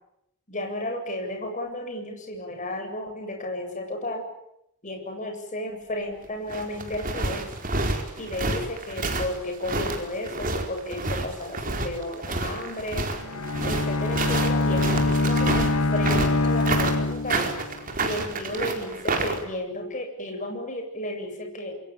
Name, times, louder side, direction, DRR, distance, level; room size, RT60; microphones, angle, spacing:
voice 1, 0.5-4.3 4.8-7.5 8.2-13.1 13.6-17.5 18.0-21.8, left 1 dB, 35° left, 4 dB, 8.0 m, -33 dB
sound 1, 6.2-19.4, right 3 dB, 40° right, 4.5 m, -29 dB
Bowed string instrument, 13.1-17.8, left 2 dB, 70° left, 1.0 m, -24 dB
28.5 x 22.5 x 8.9 m, 0.78 s
head